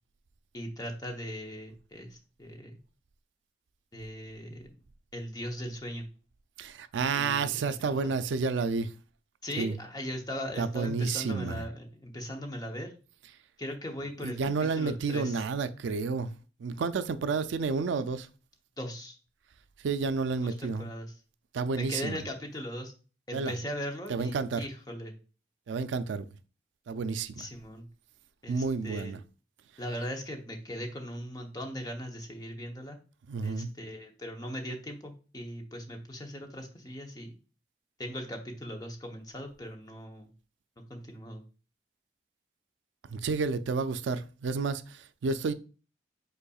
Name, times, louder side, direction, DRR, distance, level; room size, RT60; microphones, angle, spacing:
voice 1, 0.5-2.8 3.9-4.7 5.1-6.1 7.1-8.1 9.4-12.9 13.6-15.4 18.8-19.2 20.4-21.1 21.8-22.9 23.3-25.1 27.4-27.9 28.4-29.2 29.8-33.0 33.4-37.4 38.0-40.3 40.9-41.4, equal, 20° left, 0.8 m, -39 dB
voice 2, 6.6-8.9 9.6-9.8 10.6-11.6 14.2-16.3 16.6-18.3 19.8-20.9 21.5-22.2 23.3-23.5 24.1-24.6 25.7-26.3 26.9-27.5 28.5-29.2 33.3-33.7 43.1-45.5, right 4 dB, 80° right, 0.4 m, -30 dB
5.5 x 4.0 x 2.3 m
head